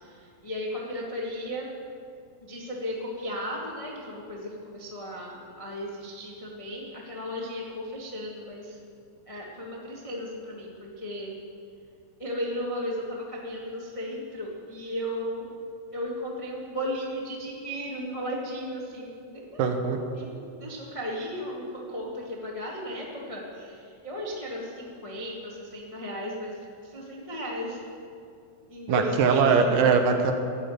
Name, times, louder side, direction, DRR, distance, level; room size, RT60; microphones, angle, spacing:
voice 1, 0.4-1.7 2.5-8.7 9.3-11.3 12.2-15.5 15.9-19.4 20.0-23.8 24.0-26.5 26.9-27.8 28.7-29.7, equal, 40° left, -3 dB, 0.4 m, -35 dB
voice 2, 19.6-20.0 28.9-30.3, right 5 dB, 75° right, 6 dB, 2.6 m, -21 dB
12.5 x 8.5 x 9.1 m, 2.4 s
omnidirectional pair, 4.0 m